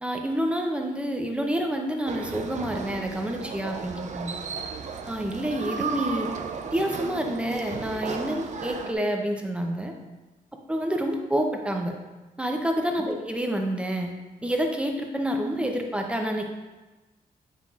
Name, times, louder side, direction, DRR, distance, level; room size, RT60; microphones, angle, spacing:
voice 1, 0.0-4.4 5.1-6.3 6.7-9.9 10.7-12.0 12.4-14.1 14.4-16.4, equal, 10° right, 3 dB, 0.5 m, -28 dB
sound 1, 2.1-8.9, right 5 dB, 55° right, 0.5 m, -35 dB
7.5 x 5.7 x 2.4 m, 1.2 s
wide cardioid pair, 165°, 15 cm